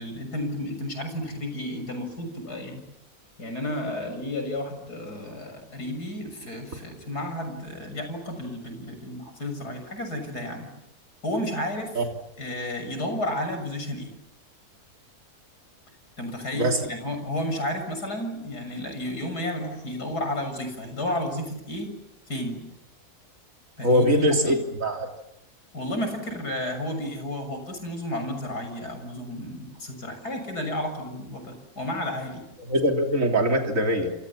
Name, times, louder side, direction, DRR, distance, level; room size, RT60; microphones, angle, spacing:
voice 1, 0.0-2.8 3.4-10.7 11.2-12.0 12.4-14.1 16.2-21.9 22.3-22.6 23.8-24.6 25.7-32.4, left 1 dB, 80° left, 6 dB, 7.4 m, -32 dB
voice 2, 23.8-25.1 32.7-34.1, equal, 55° right, 3 dB, 3.8 m, -22 dB
28.0 x 28.0 x 7.4 m, 0.87 s
omnidirectional pair, 1.7 m